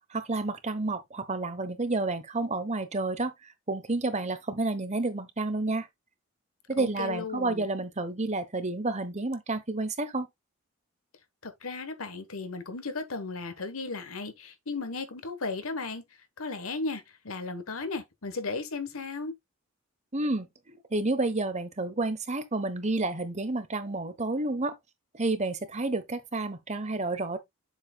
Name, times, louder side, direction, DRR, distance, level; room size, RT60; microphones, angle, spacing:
voice 1, 0.1-3.3 3.7-5.9 6.7-10.3 20.1-24.7 25.1-27.4, right 2 dB, 35° right, 1.0 m, -30 dB
voice 2, 6.8-7.7 11.4-16.0 16.4-19.3, left 3 dB, 75° left, 1.3 m, -35 dB
7.4 x 7.1 x 2.3 m
head